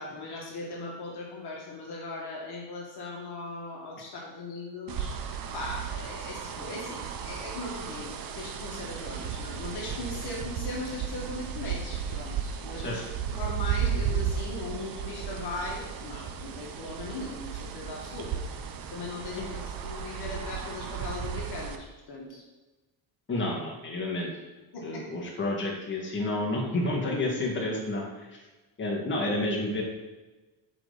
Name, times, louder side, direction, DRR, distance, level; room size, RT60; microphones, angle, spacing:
voice 1, 0.0-5.1 5.5-13.0 13.3-18.4 18.9-22.4 24.7-25.1, left 2 dB, 50° left, -2 dB, 2.0 m, -39 dB
sound 1, 4.9-21.8, right 7 dB, 45° right, 0.8 m, -34 dB
voice 2, 23.3-24.3 24.8-28.4 28.8-29.8, left 2 dB, 25° left, -3 dB, 2.1 m, -30 dB
8.9 x 5.2 x 4.1 m, 1.2 s
cardioid pair, 110°, 49 cm